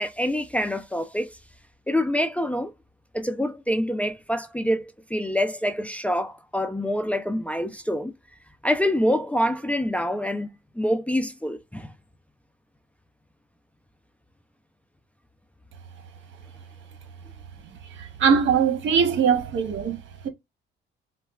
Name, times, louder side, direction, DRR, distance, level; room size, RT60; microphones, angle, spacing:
voice 1, 0.0-1.4 1.9-2.7 3.1-8.1 8.6-10.5 10.8-11.9, equal, 5° left, 0.5 m, -26 dB
voice 2, 18.2-20.0, right 6 dB, 75° right, 1.1 m, -20 dB
4.1 x 2.2 x 2.3 m
cardioid pair, 90°, 20 cm